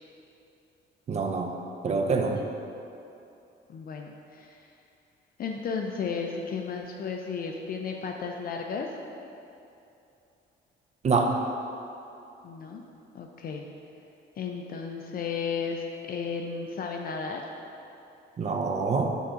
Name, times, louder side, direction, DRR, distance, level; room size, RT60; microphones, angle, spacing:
voice 1, 1.1-1.5 1.8-2.4 11.0-11.3 18.4-19.1, right 4 dB, 35° right, 3 dB, 0.4 m, -25 dB
voice 2, 3.7-4.7 5.4-8.9 12.4-12.8 13.1-13.7 14.4-17.5, left 5 dB, 50° left, 2 dB, 0.4 m, -34 dB
5.4 x 2.4 x 3.9 m, 2.7 s
cardioid pair, 90°, 20 cm